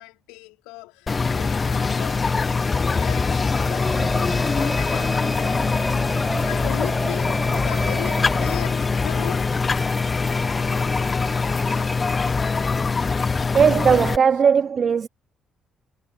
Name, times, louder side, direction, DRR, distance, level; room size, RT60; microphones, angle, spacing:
voice 1, 0.0-9.5 11.6-11.9, left 23 dB, 75° left, 2.9 m, -38 dB
sound 1, 1.1-14.2, left 4 dB, 35° left, 1.7 m, -23 dB
Engine, 1.9-12.7, left 2 dB, 15° left, 2.0 m, -37 dB
sound 2, 3.5-8.5, right 2 dB, 20° right, 2.0 m, -33 dB
voice 2, 13.5-15.1, right 6 dB, 45° right, 0.4 m, -18 dB
hypercardioid pair, 45°, 0 cm